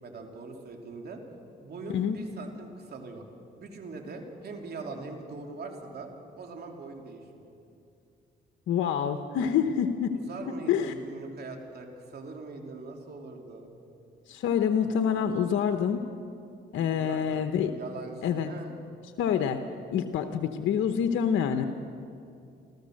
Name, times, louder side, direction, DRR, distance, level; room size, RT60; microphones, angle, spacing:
voice 1, 0.0-1.2 1.6-3.2 3.5-6.1 6.4-7.5 10.1-13.7 16.9-17.4 17.7-18.8, right 3 dB, 55° right, 2 dB, 3.2 m, -41 dB
voice 2, 8.7-10.1 10.7-10.9 14.3-16.0 16.7-17.7 18.2-18.5 19.2-19.6 19.9-21.6, left 8 dB, 80° left, 7 dB, 1.0 m, -26 dB
29.5 x 13.5 x 6.5 m, 2.5 s
cardioid pair, 90°, 20 cm